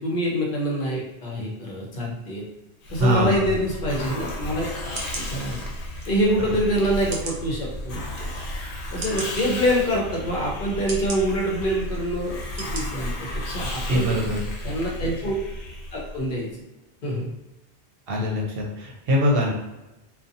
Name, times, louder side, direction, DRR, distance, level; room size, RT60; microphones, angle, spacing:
voice 1, 0.0-2.5 2.9-4.7 5.2-5.6 6.1-8.3 8.9-14.1 14.6-15.3 15.9-16.5 17.0-17.3, equal, 60° left, -2 dB, 0.7 m, -26 dB
Hiss, 2.8-16.3, left 1 dB, 90° left, 0.9 m, -33 dB
voice 2, 3.0-3.5 13.9-14.4 18.1-19.5, equal, 65° right, -2 dB, 0.8 m, -22 dB
sound 1, 4.2-4.4 4.9-5.3 6.0-6.1 7.1-7.4 8.1-8.2 9.0-9.3 10.1-10.2 10.9-11.2 11.9-12.0 12.6-12.8 13.3-13.4, right 2 dB, 45° right, 0.3 m, -34 dB
2.5 x 2.2 x 2.6 m, 1.0 s
omnidirectional pair, 1.1 m